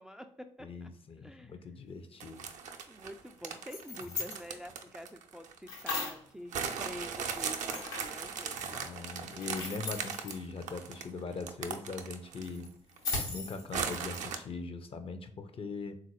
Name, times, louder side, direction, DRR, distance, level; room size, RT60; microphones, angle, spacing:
voice 1, 0.0-0.9 1.2-1.5 2.9-8.8, equal, 5° right, 6 dB, 0.3 m, -47 dB
voice 2, 0.6-2.5 4.0-4.1 8.6-12.7 13.3-16.0, left 4 dB, 40° left, 8 dB, 0.6 m, -41 dB
sound 1, 2.2-5.9 6.5-12.6 13.0-13.1 13.7-14.4, right 6 dB, 60° right, 0.5 m, -38 dB
sound 2, 3.5-4.4 5.7-6.3 7.7-8.2 9.3-10.4 12.4-14.2, left 3 dB, 75° left, 0.9 m, -38 dB
3.7 x 2.5 x 3.0 m, 0.64 s
hypercardioid pair, 40°, 14 cm